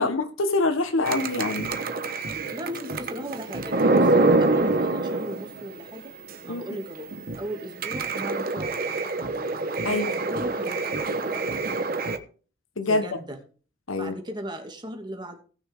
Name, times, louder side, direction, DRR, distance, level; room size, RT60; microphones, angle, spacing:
voice 1, 0.0-1.7 6.5-6.6 9.8-10.1 12.8-13.0 13.9-14.1, left 2 dB, 80° left, 1.4 m, -25 dB
sound 1, 1.1-5.8 6.3-6.4 6.7-6.8 7.1-12.2, right 2 dB, 45° right, 1.2 m, -26 dB
voice 2, 2.3-6.1 6.4-7.1 7.4-11.8 12.9-13.4 14.0-15.4, equal, 20° right, 2.4 m, -37 dB
19.0 x 6.5 x 3.7 m
head